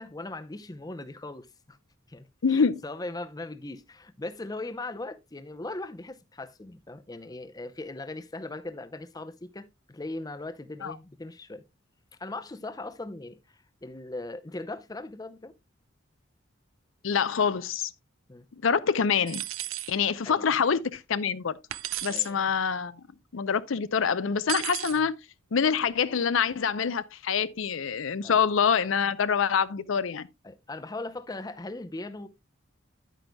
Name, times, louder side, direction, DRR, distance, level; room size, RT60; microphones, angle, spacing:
voice 1, 0.0-1.8 2.1-11.6 12.2-15.5 18.3-18.4 20.3-20.5 22.1-22.5 24.9-25.0 28.2-28.4 30.4-32.3, left 2 dB, 20° left, 0.6 m, -39 dB
voice 2, 2.4-2.8 10.8-11.0 17.0-17.9 18.6-19.4 19.9-21.5 22.0-22.9 23.3-25.1 25.5-30.3, left 6 dB, 75° left, 0.5 m, -25 dB
sound 1, 19.3-19.9 21.7-22.3 24.5-25.0, right 14 dB, 85° right, 0.6 m, -34 dB
10.5 x 9.1 x 2.2 m
head